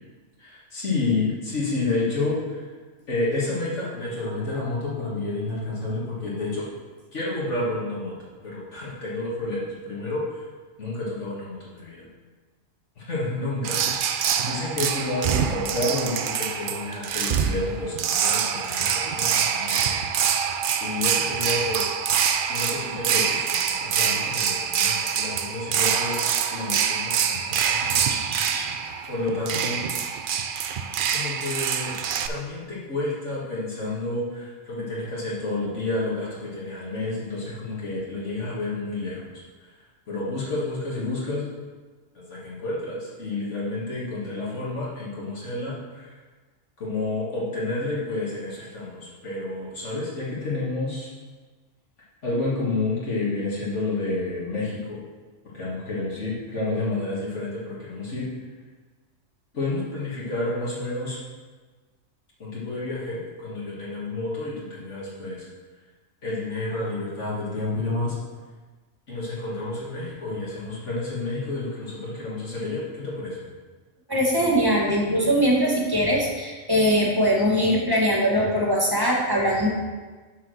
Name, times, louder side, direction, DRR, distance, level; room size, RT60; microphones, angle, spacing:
voice 1, 0.4-2.7 3.1-6.7 7.1-8.2 8.4-10.4 10.8-12.1 13.0-20.3 20.8-21.9 22.5-26.2 26.5-28.1 29.1-29.9 31.1-31.9 32.3-39.2 39.6-39.7 40.1-41.5 42.1-46.1 46.8-51.1 52.2-55.0 55.5-58.3 59.5-61.2 62.4-65.5 66.2-68.2 69.1-73.4, left 2 dB, 65° left, -6 dB, 2.1 m, -30 dB
sound 1, 13.6-32.3, right 8 dB, 65° right, 0.5 m, -25 dB
voice 2, 28.1-28.7 74.1-79.7, equal, 20° right, -3 dB, 1.5 m, -22 dB
6.8 x 4.8 x 6.3 m, 1.4 s
omnidirectional pair, 1.3 m